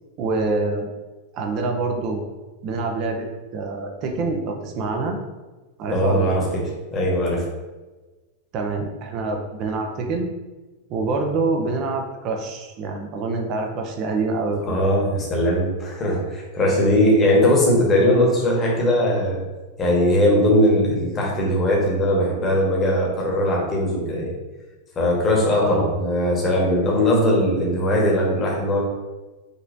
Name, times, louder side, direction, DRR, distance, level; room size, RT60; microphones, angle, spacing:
voice 1, 0.2-0.9 1.3-2.2 2.6-3.3 3.5-5.2 5.8-6.4 8.5-10.3 10.9-14.8 25.6-25.9, right 3 dB, 40° right, 3 dB, 0.7 m, -26 dB
voice 2, 5.9-6.6 6.9-7.5 14.7-19.4 19.8-24.3 24.9-28.8, left 1 dB, 25° left, -2 dB, 1.3 m, -20 dB
5.2 x 3.1 x 2.6 m, 1.2 s
figure-of-eight pair, 90°, 0 cm